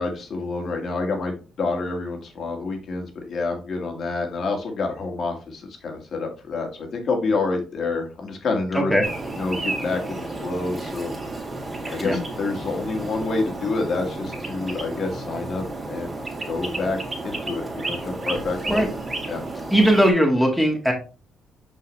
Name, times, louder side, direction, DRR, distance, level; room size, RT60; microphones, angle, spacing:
voice 1, 0.0-8.9 9.3-11.1 11.9-15.6 15.9-16.2 16.5-18.9 19.3-19.4, left 3 dB, 55° left, 3 dB, 1.8 m, -28 dB
sound 1, 9.0-20.1, right 2 dB, 30° right, 2.4 m, -32 dB
voice 2, 19.7-20.9, equal, ahead, 1 dB, 1.8 m, -19 dB
5.7 x 5.6 x 3.1 m, 0.34 s
cardioid pair, 90°, 0 cm